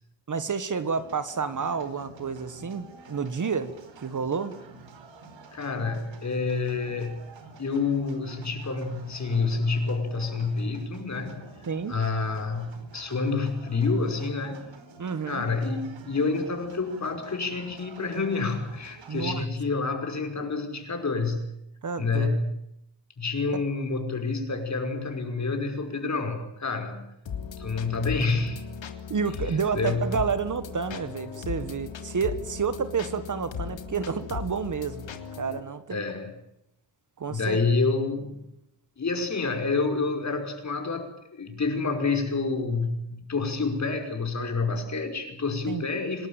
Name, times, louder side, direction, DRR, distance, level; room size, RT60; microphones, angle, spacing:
voice 1, 0.3-3.7 4.0-4.5 11.7-11.9 15.0-15.5 19.1-19.4 21.8-22.4 29.1-35.1 35.4-36.0 37.2-37.6 45.7-45.8, right 5 dB, 45° right, 12 dB, 1.5 m, -30 dB
sound 1, 0.9-19.4, right 4 dB, 85° right, 4.6 m, -49 dB
voice 2, 5.5-7.2 7.6-11.4 11.9-14.7 15.2-21.5 22.0-22.5 23.2-27.1 27.6-28.6 29.5-30.0 35.9-36.3 37.3-38.4 39.0-46.3, left 4 dB, 40° left, 5 dB, 5.5 m, -28 dB
sound 2, 27.3-35.6, left 7 dB, 85° left, 3.3 m, -37 dB
27.0 x 20.0 x 9.0 m, 0.82 s
wide cardioid pair, 150°, 44 cm